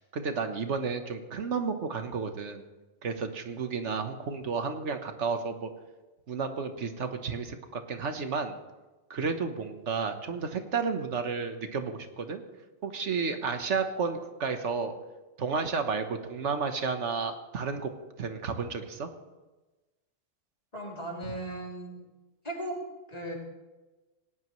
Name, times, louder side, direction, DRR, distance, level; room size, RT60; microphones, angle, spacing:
voice 1, 0.0-2.6 3.0-5.7 6.3-8.6 9.1-12.4 12.8-14.9 15.4-17.9 18.2-19.1 21.3-21.4, right 5 dB, 80° right, 7 dB, 1.5 m, -32 dB
voice 2, 20.7-22.0 22.4-22.8 23.1-23.4, right 1 dB, 35° left, -2 dB, 3.1 m, -37 dB
18.5 x 17.5 x 3.2 m, 1.1 s
omnidirectional pair, 1.2 m